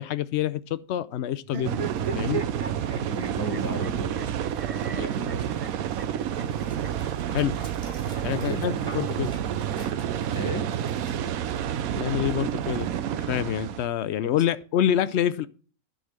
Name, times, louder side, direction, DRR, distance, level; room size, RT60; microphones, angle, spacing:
voice 1, 0.0-1.9 2.1-2.4 7.3-7.5 8.2-9.3 11.9-15.5, left 10 dB, 70° left, 0.6 m, -27 dB
sound 1, 1.4-7.6 8.6-9.7, right 5 dB, 35° right, 0.6 m, -38 dB
sound 2, 1.6-13.9, right 9 dB, 70° right, 1.1 m, -29 dB
Dog, 2.6-12.5, equal, 15° right, 2.5 m, -48 dB
voice 2, 3.1-4.3 4.8-5.5 8.4-8.8 10.3-10.7 14.3-14.4, right 1 dB, 15° left, 1.8 m, -35 dB
10.0 x 4.1 x 6.4 m
omnidirectional pair, 1.6 m